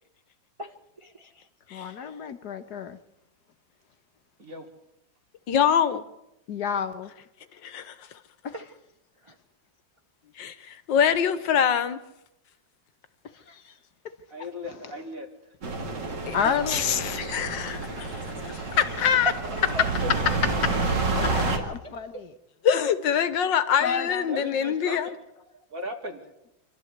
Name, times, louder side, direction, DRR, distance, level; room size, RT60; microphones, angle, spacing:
voice 1, 0.6-1.5 1.8-2.1 8.5-8.7 9.2-9.4 18.5-20.1 21.6-21.7, right 3 dB, 30° right, 0.5 m, -38 dB
voice 2, 1.7-3.0 6.5-7.1 8.4-8.5 13.3-13.8 14.0-14.1 16.3-17.4 21.2-22.3 23.8-24.3, left 7 dB, 60° left, 1.5 m, -31 dB
voice 3, 5.5-6.0 7.6-7.9 10.4-12.0 16.3-16.4 16.7-19.3 22.6-25.1, left 8 dB, 80° left, 1.7 m, -24 dB
voice 4, 14.3-15.5 17.7-18.0 21.2-21.3 24.3-25.2 25.5-26.2, left 1 dB, 45° right, 2.7 m, -38 dB
sound 1, 15.6-21.6, right 3 dB, 65° right, 2.9 m, -29 dB
26.0 x 13.0 x 8.1 m
omnidirectional pair, 2.0 m